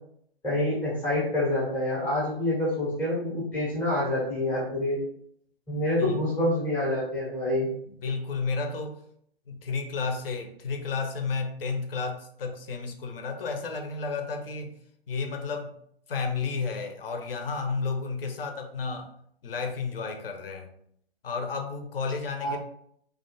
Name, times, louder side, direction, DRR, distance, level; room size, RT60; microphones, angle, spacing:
voice 1, 0.4-5.0 5.7-7.7 22.4-22.6, left 1 dB, 5° left, -7 dB, 0.4 m, -27 dB
voice 2, 5.7-6.2 7.9-9.0 9.5-14.8 15.1-15.7 16.1-19.1 19.4-20.7 21.2-22.6, left 4 dB, 65° left, 5 dB, 0.5 m, -32 dB
2.4 x 2.2 x 2.6 m, 0.68 s
figure-of-eight pair, 125°, 31 cm